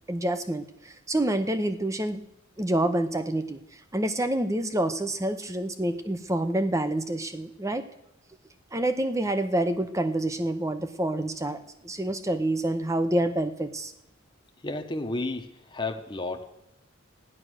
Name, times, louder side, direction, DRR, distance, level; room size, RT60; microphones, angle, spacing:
voice 1, 0.1-2.2 2.6-7.8 8.7-13.9, right 1 dB, 15° right, 10 dB, 0.7 m, -27 dB
voice 2, 14.6-16.4, left 2 dB, 20° left, 5 dB, 1.0 m, -32 dB
13.0 x 10.5 x 6.4 m, 0.89 s
head